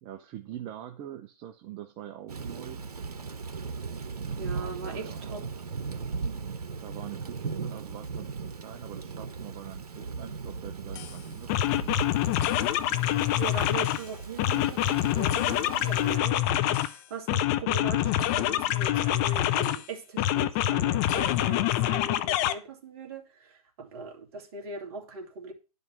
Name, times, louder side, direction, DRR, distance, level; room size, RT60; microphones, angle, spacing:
voice 1, 0.0-2.9 4.3-5.5 6.8-11.5 11.8-12.0, right 11 dB, 25° right, 0.8 m, -44 dB
Thunder / Rain, 2.3-16.2, right 5 dB, 80° right, 1.2 m, -38 dB
voice 2, 4.4-5.4 13.4-25.5, right 4 dB, 40° right, 2.4 m, -39 dB
sound 1, 10.9-11.1 11.5-14.0 14.4-16.9 17.3-19.8 20.2-22.5, left 13 dB, 25° left, 0.6 m, -26 dB
10.5 x 5.4 x 6.2 m
hypercardioid pair, 135°, 20 cm